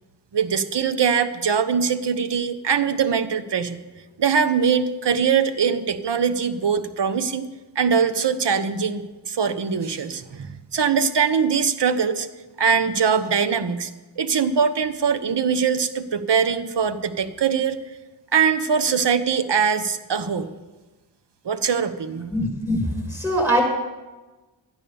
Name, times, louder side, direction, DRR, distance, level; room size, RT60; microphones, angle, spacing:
voice 1, 0.3-3.8 4.2-7.5 7.7-12.3 12.6-13.9 14.2-17.8 18.3-20.5 21.4-22.3, right 6 dB, 60° right, 11 dB, 1.1 m, -22 dB
voice 2, 22.3-23.6, equal, 5° right, 1 dB, 6.1 m, -22 dB
12.5 x 9.8 x 7.0 m, 1.2 s
cardioid pair, 50°, 47 cm